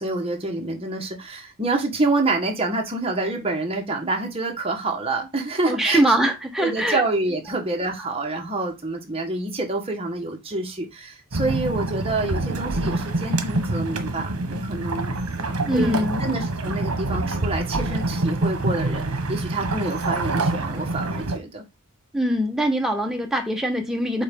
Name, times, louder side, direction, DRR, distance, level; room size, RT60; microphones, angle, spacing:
voice 1, 0.0-6.0 6.6-15.1 15.7-21.6, right 2 dB, 25° right, 1.4 m, -27 dB
voice 2, 5.7-7.0 15.6-16.3 22.1-24.2, right 1 dB, ahead, 1.1 m, -22 dB
sound 1, 11.3-21.4, right 2 dB, 75° right, 1.2 m, -26 dB
7.9 x 2.7 x 5.3 m
head